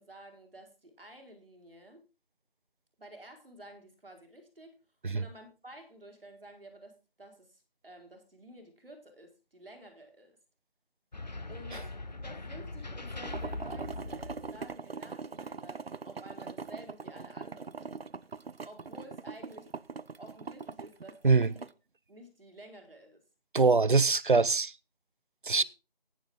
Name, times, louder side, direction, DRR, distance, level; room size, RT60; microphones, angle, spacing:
voice 1, 0.0-2.0 3.0-4.8 5.1-10.4 11.5-18.0 18.6-19.7 20.2-21.6 22.1-23.2 25.6-25.7, right 1 dB, ahead, 1.2 m, -52 dB
sound 1, 11.1-14.8, left 2 dB, 45° left, 0.8 m, -41 dB
sound 2, 13.2-21.7, right 4 dB, 90° right, 0.7 m, -42 dB
voice 2, 23.5-24.7 25.4-25.6, right 4 dB, 55° right, 0.7 m, -23 dB
12.5 x 9.4 x 3.7 m
figure-of-eight pair, 170°, 30 cm